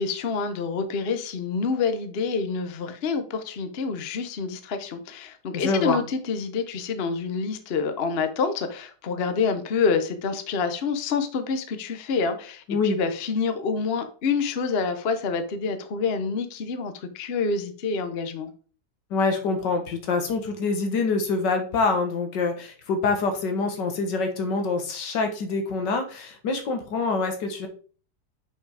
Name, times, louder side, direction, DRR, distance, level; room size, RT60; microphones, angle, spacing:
voice 1, 0.0-18.5, left 5 dB, 45° left, 8 dB, 0.9 m, -27 dB
voice 2, 5.5-6.0 12.7-13.0 19.1-27.7, left 4 dB, 90° left, 6 dB, 1.9 m, -25 dB
5.9 x 5.3 x 4.9 m, 0.40 s
omnidirectional pair, 1.8 m